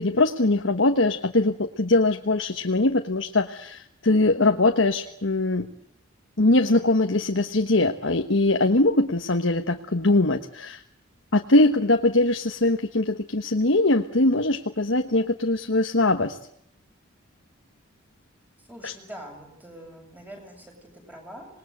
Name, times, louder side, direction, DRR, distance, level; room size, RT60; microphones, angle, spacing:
voice 1, 0.0-5.7 6.4-10.8 11.3-16.4 18.8-18.9, left 2 dB, 65° left, 6 dB, 1.3 m, -22 dB
voice 2, 18.6-21.5, right 1 dB, 10° right, 1 dB, 7.7 m, -44 dB
27.0 x 20.5 x 8.0 m, 0.74 s
head